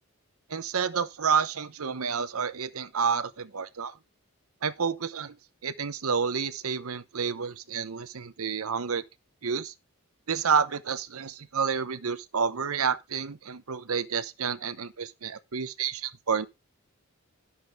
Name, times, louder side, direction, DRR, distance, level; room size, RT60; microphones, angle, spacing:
voice 1, 0.5-3.9 4.6-5.3 5.6-9.0 9.4-9.7 10.3-16.5, right 6 dB, 75° right, 0.8 m, -29 dB
11.0 x 8.6 x 3.5 m
head